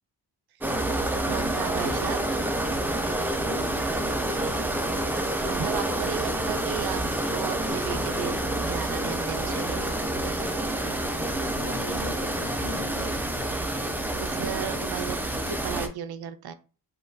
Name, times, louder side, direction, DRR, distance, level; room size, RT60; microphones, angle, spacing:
sound 1, 0.6-15.9, right 1 dB, 5° right, 0.4 m, -28 dB
voice 1, 0.6-2.2 5.4-7.0 7.3-9.9 14.2-16.5, right 9 dB, 70° right, 10 dB, 0.5 m, -35 dB
voice 2, 3.1-3.9 11.2-13.2, left 3 dB, 85° left, 4 dB, 0.9 m, -39 dB
3.7 x 2.4 x 2.6 m, 0.35 s
wide cardioid pair, 110°, 39 cm